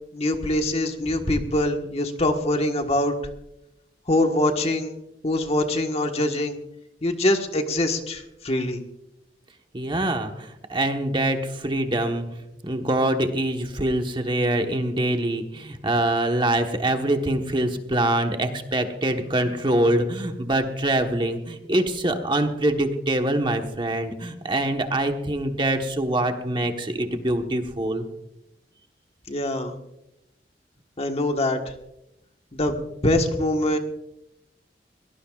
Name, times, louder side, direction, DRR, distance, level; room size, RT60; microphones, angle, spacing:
voice 1, 0.1-3.1 4.1-4.9 5.2-6.6 7.0-8.8 29.3-29.7 31.0-31.6 32.5-33.8, left 1 dB, 35° left, 4 dB, 1.5 m, -24 dB
voice 2, 9.7-28.1, right 1 dB, 30° right, 5 dB, 1.3 m, -24 dB
22.5 x 18.5 x 2.5 m, 0.85 s
head